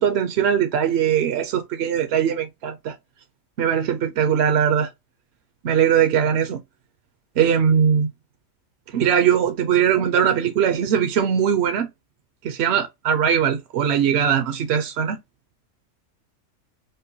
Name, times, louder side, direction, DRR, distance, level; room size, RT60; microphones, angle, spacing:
voice 1, 0.0-2.9 3.6-4.9 5.6-6.6 7.4-8.1 8.9-11.9 12.4-15.2, right 8 dB, 60° right, 0.7 m, -20 dB
5.0 x 2.2 x 2.7 m
omnidirectional pair, 1.4 m